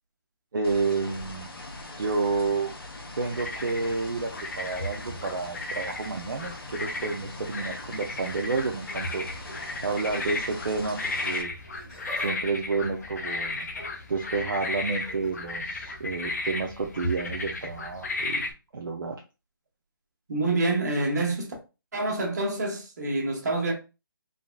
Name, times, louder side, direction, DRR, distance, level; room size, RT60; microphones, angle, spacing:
voice 1, 0.5-1.5 1.9-2.7 3.2-4.3 4.6-9.2 9.8-11.5 12.2-13.7 14.1-18.4 18.7-19.2, right 4 dB, 60° right, 0.6 m, -30 dB
sound 1, 0.6-11.4, left 2 dB, 85° left, 0.9 m, -42 dB
sound 2, 3.3-18.5, left 2 dB, 45° left, 0.6 m, -35 dB
Laughter, 11.5-12.4 12.7-14.0 14.9-15.3 16.6-16.8 17.7-17.8, right 1 dB, 5° left, 0.9 m, -45 dB
voice 2, 20.3-21.5 21.9-23.7, right 2 dB, 45° right, 1.1 m, -27 dB
3.7 x 2.1 x 2.2 m
hypercardioid pair, 165°, 12 cm